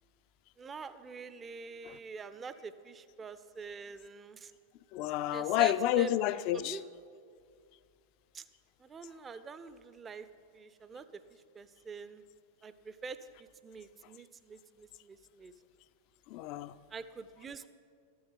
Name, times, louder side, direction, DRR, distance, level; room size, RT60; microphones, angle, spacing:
voice 1, 0.6-4.5 5.3-6.1 6.5-6.8 8.3-8.5 8.8-10.3 10.5-11.1 11.5-12.2 12.6-15.5 16.9-17.7, right 5 dB, 20° right, 0.4 m, -45 dB
voice 2, 4.9-6.8 16.3-16.7, left 13 dB, 45° left, 0.3 m, -30 dB
13.0 x 6.3 x 5.5 m
figure-of-eight pair, 90°, 0 cm